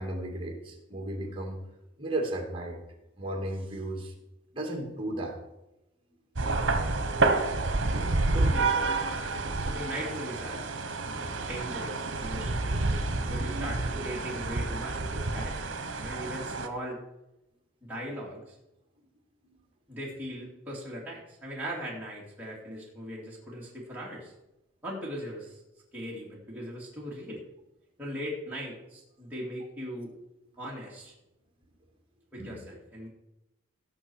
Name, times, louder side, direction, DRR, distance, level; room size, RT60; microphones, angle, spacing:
voice 1, 0.0-1.6 2.0-2.8 3.2-4.1 4.5-5.4 19.4-19.6 32.4-32.6, right 1 dB, 25° right, 1 dB, 2.3 m, -34 dB
sound 1, 6.4-16.7, right 3 dB, 70° right, 1.1 m, -29 dB
voice 2, 8.3-8.9 9.6-10.6 11.5-12.8 13.3-15.7 16.0-17.0 17.8-18.6 19.9-24.3 24.8-25.6 25.9-27.4 28.0-30.1 30.6-31.1 32.3-33.1, equal, 10° right, -5 dB, 2.5 m, -39 dB
17.5 x 6.3 x 4.6 m, 0.93 s
head